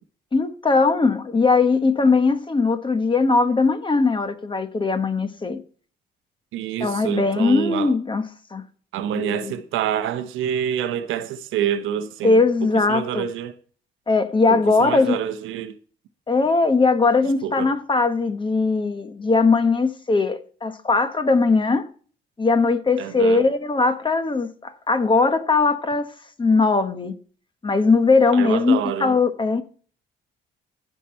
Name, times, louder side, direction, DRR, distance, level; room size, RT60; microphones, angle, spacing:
voice 1, 0.3-5.6 6.8-8.2 8.5-8.6 9.1-9.5 12.2-13.3 14.1-15.2 16.3-21.9 22.4-26.1 26.4-27.1 27.6-29.6, left 3 dB, 25° left, 1.2 m, -20 dB
voice 2, 6.5-7.9 8.9-12.4 12.7-13.6 14.5-15.8 17.4-17.7 23.0-23.4 28.3-29.2, right 9 dB, 90° right, 0.8 m, -27 dB
15.0 x 5.8 x 4.4 m
cardioid pair, 90°, 20 cm